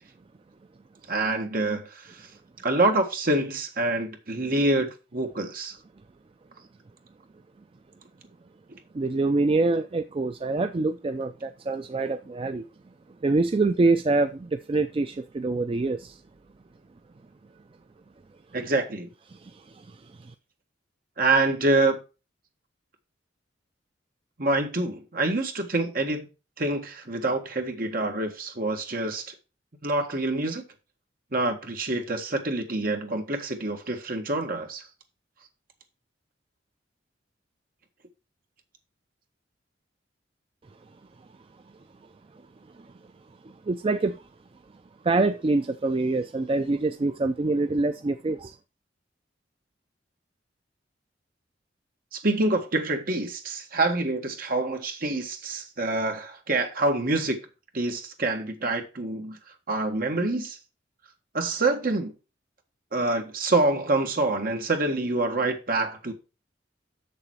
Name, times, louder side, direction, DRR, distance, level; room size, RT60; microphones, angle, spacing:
voice 1, 1.1-2.3 2.6-5.8 18.5-19.1 21.2-22.0 24.4-26.3 26.6-29.3 29.8-30.6 31.3-34.8 52.1-57.4 57.7-59.4 59.7-60.6 61.3-62.1 62.9-66.1, right 2 dB, 50° right, 1.6 m, -26 dB
voice 2, 8.9-12.7 13.2-16.1 43.7-44.2 45.0-48.5, right 3 dB, 30° right, 0.4 m, -25 dB
7.0 x 6.9 x 4.7 m
head